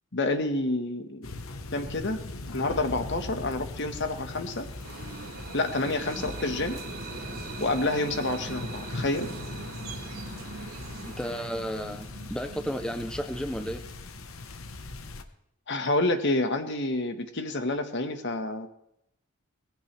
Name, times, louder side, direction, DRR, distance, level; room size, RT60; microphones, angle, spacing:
voice 1, 0.1-1.3 1.7-2.2 2.5-4.7 5.5-6.8 7.6-9.3 15.7-18.7, left 2 dB, 55° left, 7 dB, 1.5 m, -28 dB
sound 1, 1.2-15.2, left 2 dB, 75° left, 1.1 m, -40 dB
sound 2, 4.5-14.3, right 3 dB, 40° right, 1.1 m, -43 dB
sound 3, 4.8-11.5, right 4 dB, 80° right, 2.9 m, -46 dB
voice 2, 11.1-13.8, equal, 5° left, 7 dB, 0.6 m, -33 dB
19.0 x 16.0 x 3.4 m, 0.79 s
head